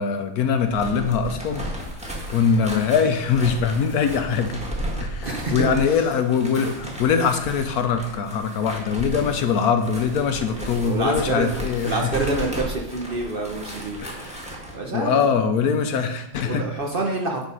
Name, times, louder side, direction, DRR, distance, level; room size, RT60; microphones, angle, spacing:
voice 1, 0.0-1.7 2.3-4.6 5.0-11.9 14.0-14.5 14.9-16.6, left 6 dB, 70° left, 7 dB, 1.2 m, -22 dB
sound 1, 0.6-14.8, equal, 5° right, 1.5 m, -34 dB
voice 2, 5.2-6.1 10.5-11.5 11.8-14.0 14.2-15.4 16.4-17.4, right 2 dB, 45° right, 1 dB, 0.8 m, -27 dB
9.0 x 4.1 x 5.3 m, 0.82 s
omnidirectional pair, 1.7 m